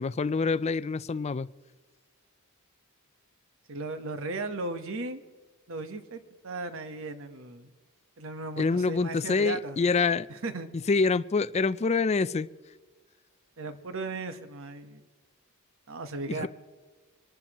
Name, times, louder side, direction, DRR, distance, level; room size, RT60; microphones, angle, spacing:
voice 1, 0.0-1.5 8.6-10.3 10.9-12.5 16.3-16.5, left 4 dB, 30° left, 15 dB, 0.4 m, -26 dB
voice 2, 3.7-5.2 5.7-7.7 8.2-9.8 10.3-10.7 13.6-15.0 15.9-16.5, right 2 dB, 60° right, 8 dB, 1.2 m, -36 dB
25.5 x 12.0 x 3.0 m, 1.4 s
head